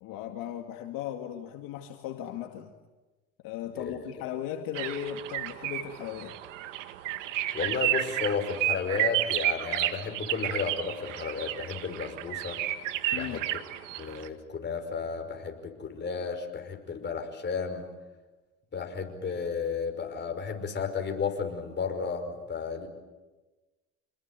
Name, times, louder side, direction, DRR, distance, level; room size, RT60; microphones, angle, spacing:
voice 1, 0.0-2.7 3.4-6.3 13.1-13.4, left 10 dB, 60° left, 4 dB, 2.3 m, -37 dB
sound 1, 4.7-14.3, right 14 dB, 85° right, 1.8 m, -31 dB
voice 2, 7.5-12.6 13.1-13.4 14.0-17.9 18.7-22.9, left 5 dB, 30° left, 4 dB, 5.4 m, -33 dB
27.5 x 20.5 x 9.3 m, 1.2 s
supercardioid pair, 100°, 37 cm